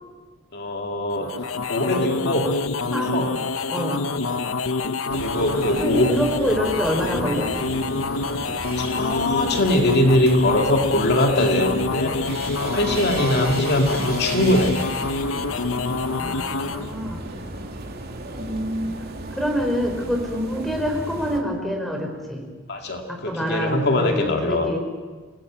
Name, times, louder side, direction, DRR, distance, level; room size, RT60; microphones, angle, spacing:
voice 1, 0.5-1.3 1.7-2.5 3.0-3.3 4.1-4.4 5.1-6.1 8.8-12.2 12.6-14.7 17.3-17.7 22.7-24.8, left 1 dB, 55° left, 3 dB, 2.3 m, -22 dB
sound 1, 1.1-16.9, left 3 dB, 75° left, 1.0 m, -26 dB
voice 2, 3.7-4.0 5.7-7.5 16.1-17.2 18.3-19.0 19.3-22.4 23.1-24.8, equal, ahead, 2 dB, 4.9 m, -26 dB
sound 2, 5.1-21.4, right 2 dB, 50° right, 3.0 m, -35 dB
28.0 x 19.5 x 8.6 m, 1.5 s
head